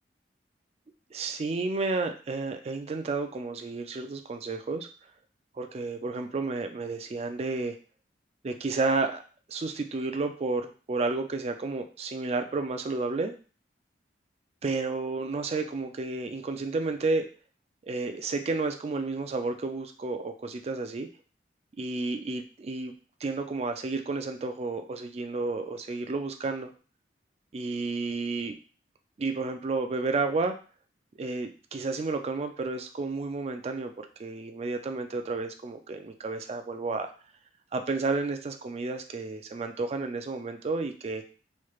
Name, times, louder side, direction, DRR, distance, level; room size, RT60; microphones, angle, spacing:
voice 1, 1.1-4.9 5.5-7.8 8.4-9.2 9.5-13.3 14.6-17.3 17.9-21.1 21.8-22.9 23.2-26.7 27.5-28.6 29.2-30.5 31.2-37.1 37.7-41.2, right 3 dB, 35° right, 6 dB, 0.3 m, -31 dB
3.2 x 3.1 x 2.3 m, 0.38 s
head